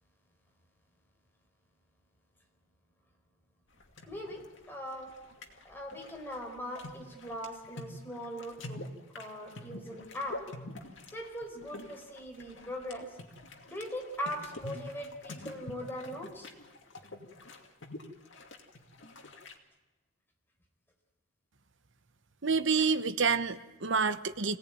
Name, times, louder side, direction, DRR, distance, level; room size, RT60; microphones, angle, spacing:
sound 1, 3.8-19.5, left 2 dB, 65° left, 2.5 m, -47 dB
voice 1, 4.1-5.1 5.6-8.8 9.1-10.4 11.1-13.1 13.7-16.5 22.8-22.9, equal, 10° left, 1 dB, 4.3 m, -40 dB
voice 2, 22.4-24.6, right 5 dB, 65° right, 11 dB, 1.0 m, -28 dB
26.0 x 17.5 x 9.4 m, 1.1 s
head